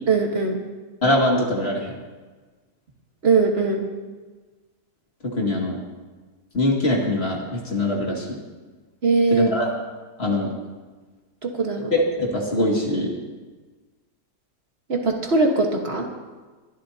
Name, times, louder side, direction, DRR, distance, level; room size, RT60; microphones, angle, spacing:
voice 1, 0.1-0.6 3.2-3.9 9.0-9.5 11.4-11.9 14.9-16.1, right 4 dB, 40° right, 2 dB, 1.5 m, -20 dB
voice 2, 1.0-1.9 5.2-5.8 6.5-8.4 9.3-9.7 10.2-10.5 11.9-13.1, left 1 dB, 40° left, -1 dB, 2.4 m, -22 dB
22.5 x 12.0 x 2.8 m, 1.3 s
omnidirectional pair, 1.8 m